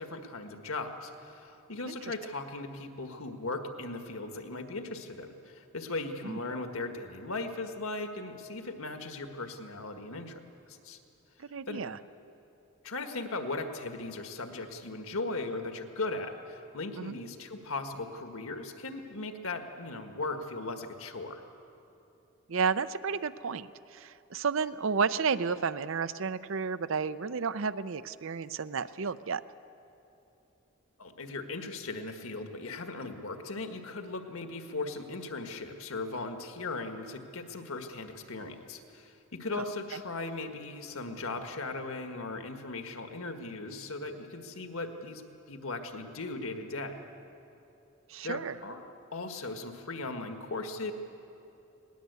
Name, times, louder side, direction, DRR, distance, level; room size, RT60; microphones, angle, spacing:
voice 1, 0.0-10.4 10.7-11.0 11.7-11.8 12.8-21.4 31.0-45.2 45.5-47.0 48.2-48.8 49.1-50.9, left 3 dB, 70° left, 6 dB, 1.7 m, -38 dB
voice 2, 11.4-12.0 17.0-17.1 22.5-29.4 39.5-39.6 39.9-40.0 48.1-48.6, right 5 dB, 60° right, 14 dB, 0.6 m, -32 dB
20.5 x 18.5 x 8.2 m, 2.9 s
head